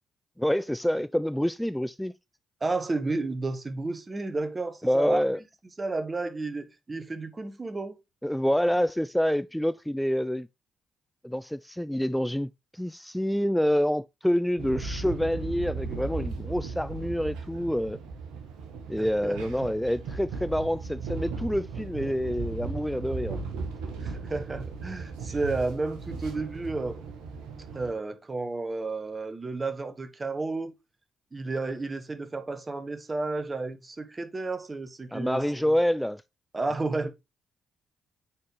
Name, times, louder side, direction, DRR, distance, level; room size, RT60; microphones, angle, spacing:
voice 1, 0.4-2.1 4.8-5.4 8.2-10.5 11.2-18.0 18.9-23.4 35.1-36.2, equal, 5° left, 0.3 m, -27 dB
voice 2, 2.6-5.2 5.8-8.0 19.0-19.4 24.0-27.0 27.7-30.7 31.3-35.6 36.5-37.1, right 3 dB, 30° right, 1.2 m, -32 dB
sound 1, 14.6-27.9, right 4 dB, 70° right, 1.2 m, -37 dB
8.6 x 4.3 x 3.2 m
figure-of-eight pair, 40°, 0 cm